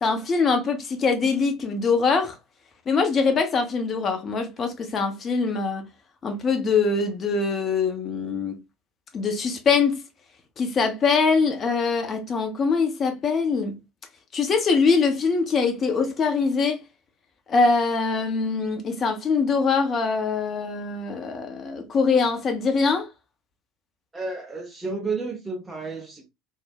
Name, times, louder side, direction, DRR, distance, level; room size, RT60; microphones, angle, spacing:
voice 1, 0.0-2.3 2.9-5.9 6.2-8.6 9.1-10.0 10.6-13.8 14.3-16.8 17.5-23.1, left 4 dB, 30° left, 0.6 m, -23 dB
voice 2, 24.1-26.3, right 4 dB, 15° right, 0.7 m, -31 dB
3.2 x 2.0 x 2.3 m
figure-of-eight pair, 70°, 0 cm